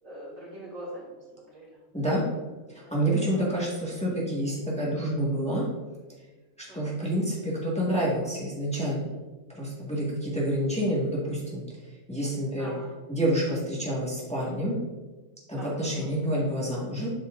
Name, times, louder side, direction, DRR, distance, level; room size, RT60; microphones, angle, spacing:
voice 1, 0.0-1.8 2.8-2.9 3.3-3.4 6.7-7.0 12.6-12.9 15.5-16.1, equal, 80° right, -5 dB, 2.6 m, -43 dB
voice 2, 2.9-5.6 6.7-9.1 9.5-11.6 12.1-12.7 13.1-14.8 15.5-17.1, right 1 dB, 5° left, -5 dB, 1.4 m, -28 dB
7.6 x 5.6 x 2.4 m, 1.3 s
omnidirectional pair, 1.4 m